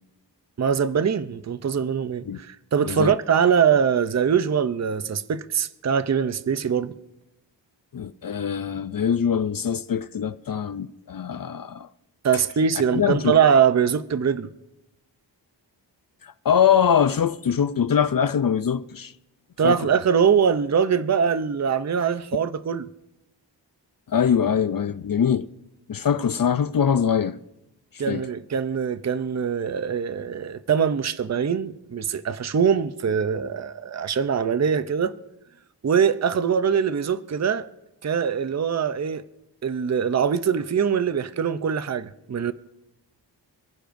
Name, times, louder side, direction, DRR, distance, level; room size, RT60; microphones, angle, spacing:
voice 1, 0.6-6.9 12.2-14.5 19.6-22.9 28.0-35.1 35.8-37.7 38.0-39.2 39.6-42.5, right 7 dB, 40° right, 0.6 m, -22 dB
voice 2, 7.9-11.9 12.9-13.4 16.2-19.1 19.6-19.9 24.1-25.5 25.9-27.4 28.1-28.3, left 8 dB, 50° left, 0.5 m, -23 dB
27.5 x 15.0 x 2.6 m
wide cardioid pair, 105°, 44 cm